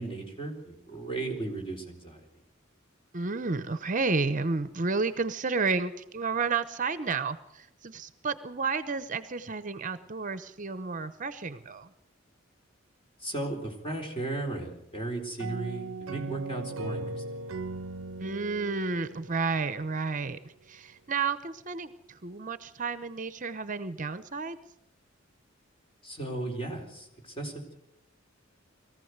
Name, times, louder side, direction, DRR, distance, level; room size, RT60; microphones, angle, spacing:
voice 1, 0.0-2.3 13.2-17.2 26.0-27.8, right 2 dB, 30° left, 3 dB, 4.1 m, -36 dB
voice 2, 3.1-11.9 18.2-24.6, right 4 dB, 40° right, 13 dB, 0.8 m, -31 dB
sound 1, 15.4-20.0, right 3 dB, 80° right, 0.6 m, -38 dB
22.0 x 15.0 x 8.1 m, 0.87 s
head